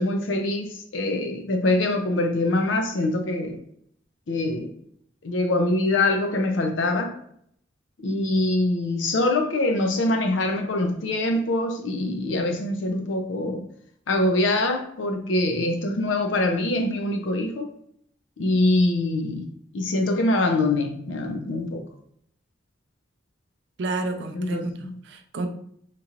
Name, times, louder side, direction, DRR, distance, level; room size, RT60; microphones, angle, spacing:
voice 1, 0.0-3.6 4.3-4.7 5.2-7.2 8.0-13.7 14.1-17.7 18.4-21.8 24.3-25.0, left 2 dB, 85° left, 5 dB, 0.5 m, -24 dB
voice 2, 23.8-25.5, right 2 dB, 65° right, 6 dB, 0.4 m, -30 dB
2.9 x 2.9 x 2.4 m, 0.67 s
head